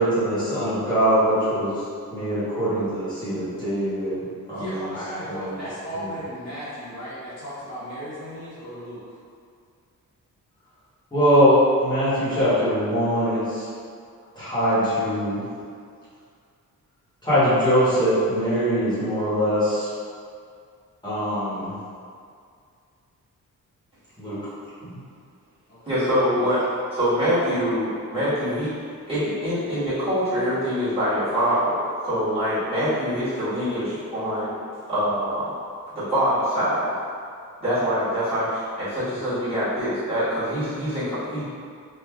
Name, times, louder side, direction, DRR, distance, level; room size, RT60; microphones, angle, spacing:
voice 1, 0.0-1.8 2.1-4.2 4.5-4.8 5.3-5.5 11.1-13.7 14.3-15.4 17.2-19.9 21.0-21.7 24.2-24.4 24.8-25.0, equal, 15° left, -14 dB, 1.0 m, -22 dB
voice 2, 4.5-9.0 25.7-25.8, equal, 50° left, -11 dB, 0.9 m, -35 dB
voice 3, 25.8-28.7 29.1-34.5 34.9-35.5 35.9-36.9 37.6-41.5, equal, 15° right, -16 dB, 1.4 m, -24 dB
3.1 x 2.6 x 2.3 m, 2.2 s
wide cardioid pair, 170°, 33 cm